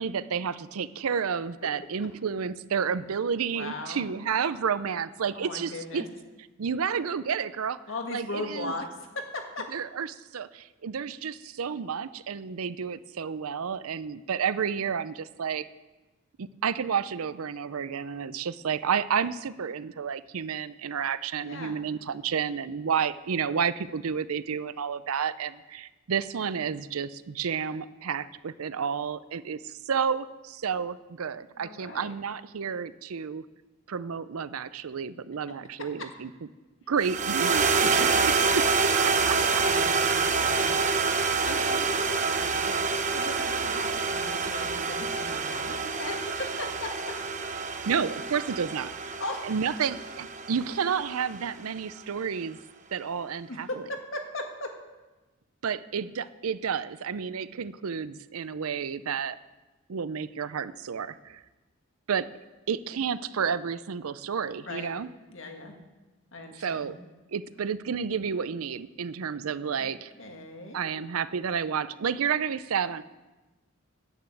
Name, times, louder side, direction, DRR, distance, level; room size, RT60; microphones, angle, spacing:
voice 1, 0.0-6.1 6.6-7.8 8.1-8.7 9.7-15.7 16.4-33.4 33.9-36.3 36.9-39.6 47.9-49.2 49.4-52.6 52.9-53.9 55.6-59.4 59.9-61.4 62.1-62.3 62.7-65.1 66.5-67.0 67.3-70.1 70.7-73.0, right 6 dB, 90° right, 16 dB, 0.5 m, -31 dB
voice 2, 3.5-4.1 5.3-6.1 7.9-8.9 9.2-9.7 21.4-21.8 31.6-32.1 37.8-38.1 39.7-40.8 41.2-42.8 43.1-46.9 49.2-49.5 53.5-54.7 64.7-64.9 65.3-65.8 66.3-66.9 69.8-70.9, left 2 dB, 65° left, 4 dB, 1.7 m, -38 dB
sound 1, 37.0-51.4, right 4 dB, 35° right, 0.8 m, -27 dB
10.0 x 9.2 x 7.8 m, 1.1 s
head